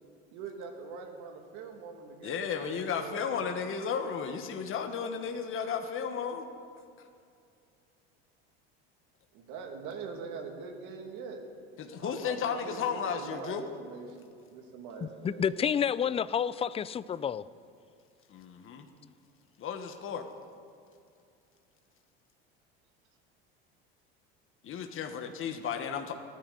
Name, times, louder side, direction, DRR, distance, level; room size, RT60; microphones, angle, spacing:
voice 1, 0.3-3.3 9.3-11.4 12.0-15.5, right 5 dB, 70° right, 3 dB, 2.6 m, -43 dB
voice 2, 2.2-6.4 11.8-13.6 18.3-18.9 19.6-20.3 24.6-26.1, left 7 dB, 45° left, 5 dB, 1.6 m, -34 dB
voice 3, 15.0-17.4, left 8 dB, 20° left, 17 dB, 0.4 m, -29 dB
28.0 x 10.0 x 4.2 m, 2.4 s
supercardioid pair, 95°, 31 cm